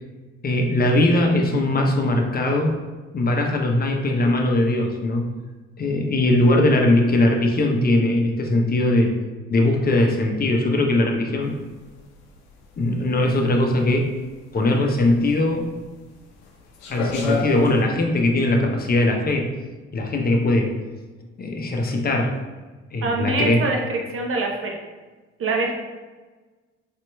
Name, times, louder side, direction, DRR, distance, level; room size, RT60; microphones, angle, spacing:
voice 1, 0.4-2.8 3.1-5.3 5.8-9.1 9.5-11.6 12.8-14.1 14.5-15.7 16.9-19.5 19.9-20.7 21.4-22.3 22.9-23.6, left 1 dB, 30° left, 2 dB, 0.7 m, -20 dB
sound 1, 11.4-17.8, left 3 dB, 80° left, 0.6 m, -32 dB
voice 2, 23.0-24.8 25.4-25.7, right 3 dB, 45° right, 2 dB, 0.8 m, -24 dB
4.2 x 2.8 x 2.2 m, 1.3 s
hypercardioid pair, 55°, 31 cm